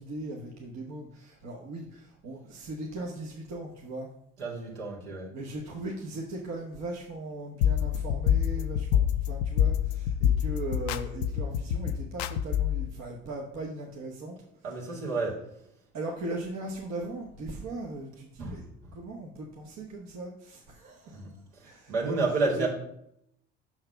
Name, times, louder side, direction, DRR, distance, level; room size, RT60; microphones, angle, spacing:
voice 1, 0.0-4.1 5.3-15.3 15.9-18.6 18.9-22.7, right 2 dB, 60° right, -1 dB, 1.3 m, -39 dB
voice 2, 4.4-5.3 14.6-15.4 18.4-18.9 21.1-22.7, right 3 dB, 80° right, -3 dB, 2.4 m, -31 dB
sound 1, 7.6-12.9, left 9 dB, 85° left, 0.5 m, -27 dB
6.0 x 4.7 x 5.7 m, 0.75 s
hypercardioid pair, 65°, 32 cm